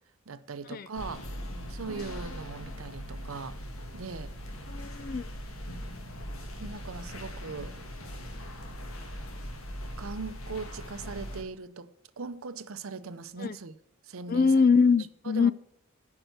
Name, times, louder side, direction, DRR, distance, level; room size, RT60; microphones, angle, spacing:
voice 1, 0.3-1.3 1.7-3.6 3.9-4.3 6.6-7.8 10.0-13.7 14.0-14.6 15.2-15.5, right 4 dB, 80° right, 0.7 m, -40 dB
sound 1, 0.9-11.4, equal, 85° left, 1.8 m, -40 dB
voice 2, 4.7-5.3 13.4-13.6 14.3-15.5, left 5 dB, 45° left, 0.4 m, -23 dB
8.9 x 5.7 x 8.0 m
head